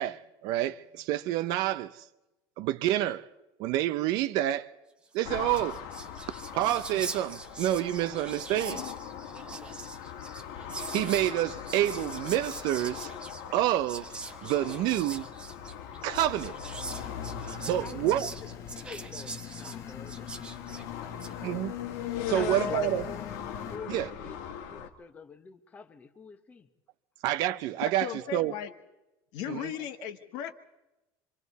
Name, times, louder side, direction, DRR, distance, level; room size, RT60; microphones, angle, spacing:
voice 1, 0.0-2.0 2.6-3.3 3.6-4.7 5.1-5.8 6.5-8.9 10.8-13.1 13.5-15.3 16.0-16.5 17.5-18.3 21.4-21.7 22.3-23.1 23.9-24.1 27.2-28.5 29.5-29.7, right 13 dB, 50° right, 0.6 m, -28 dB
Whispering, 5.1-5.2 5.4-21.4, right 3 dB, 10° right, 0.8 m, -43 dB
sound 1, 5.2-24.9, left 8 dB, 70° left, 1.6 m, -40 dB
sound 2, 16.9-23.8, left 10 dB, 35° left, 1.1 m, -44 dB
voice 2, 17.8-18.2 18.8-21.7 22.3-22.8 23.7-24.4 24.7-26.7, left 5 dB, 15° left, 1.0 m, -48 dB
voice 3, 28.0-28.7 29.3-30.5, left 10 dB, 55° left, 1.4 m, -36 dB
26.5 x 25.0 x 4.1 m
cardioid pair, 170°, 9 cm